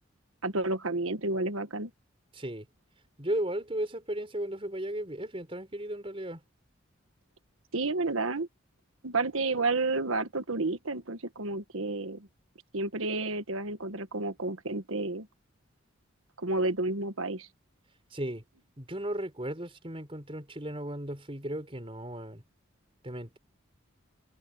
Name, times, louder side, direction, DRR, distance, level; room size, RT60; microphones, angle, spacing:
voice 1, 0.4-1.9 7.7-8.5 9.0-12.3 12.7-15.3 16.4-17.5, right 3 dB, 85° right, 1.5 m, -31 dB
voice 2, 2.3-2.7 3.2-6.4 18.1-18.5 18.8-22.4 23.0-23.4, right 1 dB, 25° right, 4.3 m, -35 dB
head